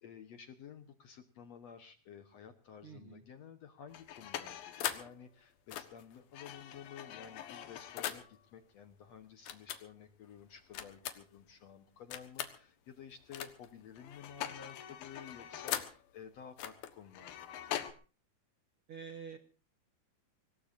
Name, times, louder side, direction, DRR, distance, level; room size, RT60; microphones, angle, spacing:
voice 1, 0.0-17.6, left 7 dB, 60° left, 8 dB, 2.0 m, -53 dB
voice 2, 2.8-3.2 18.9-19.4, right 6 dB, 50° right, 6 dB, 1.7 m, -47 dB
sound 1, 3.9-5.1 5.7-8.3 9.5-9.8 10.7-11.4 12.1-12.6 13.3-13.7 14.0-16.0 16.6-17.9, left 11 dB, 90° left, 3.2 m, -41 dB
24.5 x 19.5 x 2.7 m, 0.36 s
omnidirectional pair, 4.1 m